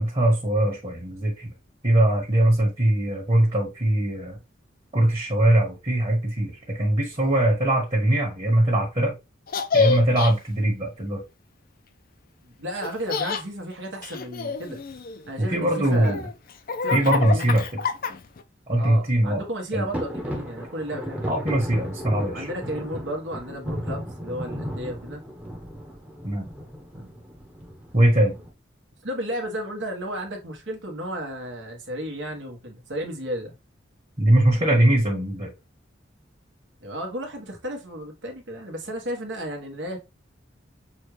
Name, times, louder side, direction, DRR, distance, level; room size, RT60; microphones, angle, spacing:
voice 1, 0.0-1.5 1.8-4.4 4.9-9.1 9.7-11.2 15.4-16.2 16.9-17.6 18.7-19.4 19.7-19.9 21.2-22.5 26.2-26.5 27.9-28.3 34.2-35.5, right 1 dB, 35° right, 1.6 m, -21 dB
Laughter, 9.5-10.3 12.8-13.4 14.0-15.3 15.8-18.4, left 5 dB, 50° left, 0.5 m, -27 dB
voice 2, 12.4-14.8 15.3-16.2 16.8-17.6 18.7-21.3 22.3-25.2 26.9-27.1 28.2-28.3 29.0-33.6 36.8-40.0, equal, 70° right, 1.4 m, -33 dB
sound 1, 19.9-28.5, equal, 5° right, 0.9 m, -35 dB
6.3 x 2.4 x 3.2 m
head